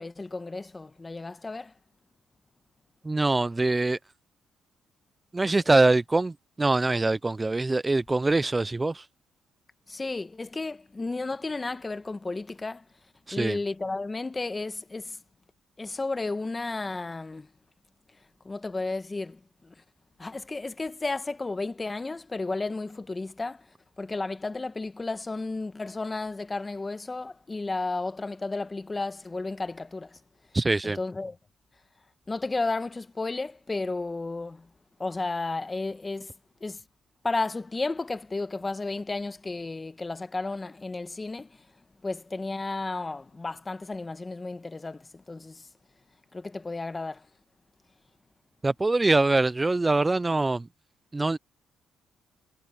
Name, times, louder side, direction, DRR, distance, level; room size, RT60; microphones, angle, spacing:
voice 1, 0.0-1.7 5.7-5.8 9.9-12.9 13.3-15.2 15.8-17.5 18.4-19.8 20.2-30.2 30.8-31.4 32.3-34.7 35.0-36.3 36.6-36.8 37.2-41.7 42.0-45.7 46.3-47.3, left 3 dB, 20° left, 1.4 m, -33 dB
voice 2, 3.0-4.0 5.3-9.1 13.3-13.6 30.5-31.0 48.6-50.7 51.1-51.4, right 2 dB, 20° right, 0.6 m, -24 dB
cardioid pair, 90°, 0 cm